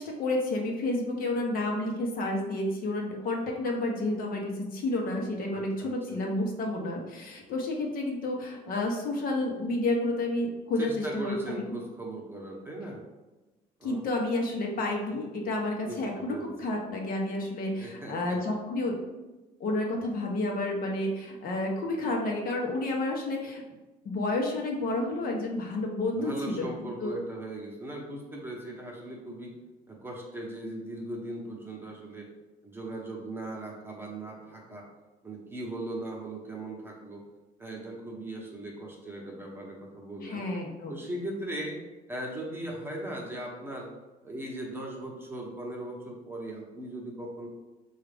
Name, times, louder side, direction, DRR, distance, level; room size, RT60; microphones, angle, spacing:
voice 1, 0.0-11.8 13.8-19.0 19.6-23.6 24.0-27.1 40.2-41.0, left 2 dB, 60° left, 0 dB, 0.8 m, -30 dB
voice 2, 5.5-6.2 10.8-13.0 13.8-14.0 15.9-16.5 17.8-18.4 26.1-29.5 29.9-32.3 32.6-34.8 35.2-37.2 37.6-40.5 40.9-41.8 42.1-43.9 44.2-47.5, right 1 dB, 15° right, -1 dB, 0.9 m, -38 dB
4.8 x 2.4 x 3.4 m, 1.1 s
cardioid pair, 110°, 17 cm